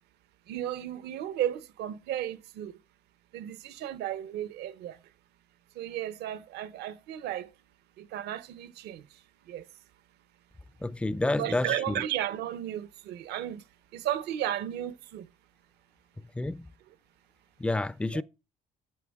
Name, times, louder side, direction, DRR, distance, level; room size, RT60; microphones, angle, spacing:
voice 1, 0.5-2.7 3.3-5.0 5.8-7.5 8.0-9.0 9.5-9.6 11.4-13.6 13.9-15.3 18.1-18.2, right 11 dB, 75° right, 0.8 m, -34 dB
voice 2, 10.8-11.9 16.4-16.7 17.6-18.2, left 2 dB, 5° left, 0.4 m, -29 dB
11.5 x 7.8 x 3.6 m
cardioid pair, 110°, 17 cm